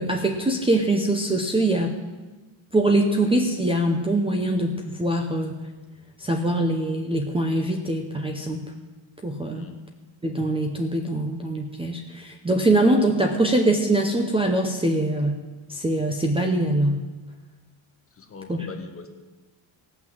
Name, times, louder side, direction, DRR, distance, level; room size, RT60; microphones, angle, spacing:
voice 1, 0.0-1.9 2.7-5.5 6.2-8.7 9.2-9.7 10.2-15.4 15.7-17.0 18.5-18.6, right 1 dB, 10° right, 3 dB, 0.6 m, -23 dB
voice 2, 18.1-19.1, left 4 dB, 30° left, 6 dB, 1.0 m, -40 dB
17.0 x 6.1 x 7.6 m, 1.2 s
cardioid pair, 175°, 48 cm